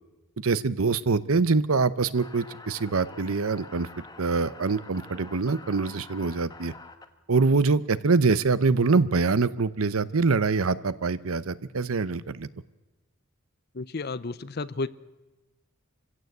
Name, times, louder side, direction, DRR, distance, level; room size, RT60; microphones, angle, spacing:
voice 1, 0.4-6.7 7.3-12.5, right 4 dB, 85° right, 17 dB, 0.8 m, -24 dB
sound 1, 2.1-7.0, left 3 dB, 20° left, 1.2 m, -47 dB
voice 2, 13.7-14.9, left 3 dB, 50° left, 16 dB, 0.7 m, -32 dB
26.0 x 16.0 x 8.0 m, 1.1 s
head